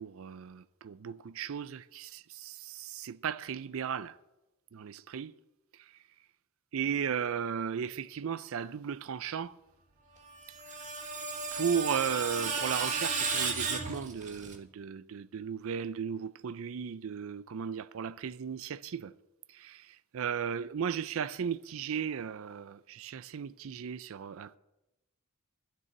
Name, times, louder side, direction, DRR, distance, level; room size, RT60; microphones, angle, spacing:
voice 1, 0.0-4.2 4.7-5.3 6.7-9.5 11.5-19.1 19.5-24.6, right 7 dB, 65° right, 0.4 m, -35 dB
Screech, 10.3-14.6, right 4 dB, 35° right, 1.7 m, -34 dB
12.0 x 6.8 x 9.8 m
head